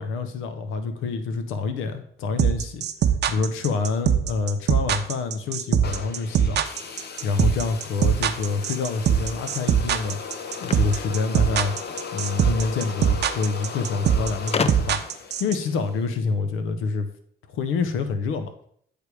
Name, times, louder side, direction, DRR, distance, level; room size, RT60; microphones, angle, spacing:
voice 1, 0.0-2.9 3.3-6.6 6.9-10.2 10.6-11.7 12.1-17.1 17.5-18.5, left 4 dB, 85° left, 9 dB, 0.7 m, -27 dB
sound 1, 2.4-15.5, right 9 dB, 60° right, 0.6 m, -21 dB
sound 2, 5.8-16.0, left 5 dB, 55° left, 0.9 m, -37 dB
sound 3, 10.6-12.0 13.1-13.2 13.5-13.6 14.5-15.2, left 5 dB, 30° left, 0.4 m, -29 dB
8.2 x 3.4 x 4.7 m, 0.65 s
cardioid pair, 90°, 20 cm